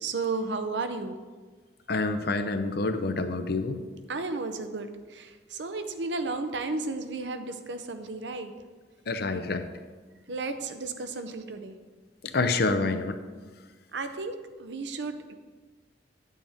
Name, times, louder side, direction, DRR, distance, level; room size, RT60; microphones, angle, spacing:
voice 1, 0.0-1.2 4.1-8.5 10.3-11.8 13.9-15.3, right 3 dB, 75° right, 8 dB, 0.7 m, -33 dB
voice 2, 1.9-3.8 9.1-9.7 12.3-13.2, left 3 dB, 60° left, 9 dB, 0.7 m, -27 dB
8.8 x 8.5 x 3.5 m, 1.4 s
head